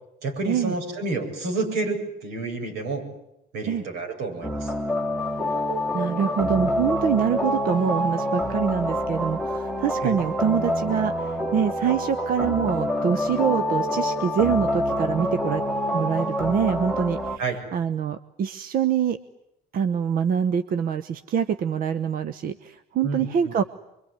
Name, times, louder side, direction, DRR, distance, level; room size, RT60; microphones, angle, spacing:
voice 1, 0.2-3.0 3.5-4.7 10.0-10.2 17.4-17.6 23.0-23.5, right 3 dB, 85° right, 2 dB, 7.6 m, -29 dB
sound 1, 4.4-17.4, left 1 dB, ahead, 1.8 m, -26 dB
voice 2, 5.9-15.6 15.9-19.2 19.7-23.6, right 7 dB, 60° right, 12 dB, 1.0 m, -25 dB
25.0 x 24.0 x 9.7 m, 0.85 s
cardioid pair, 110°, 17 cm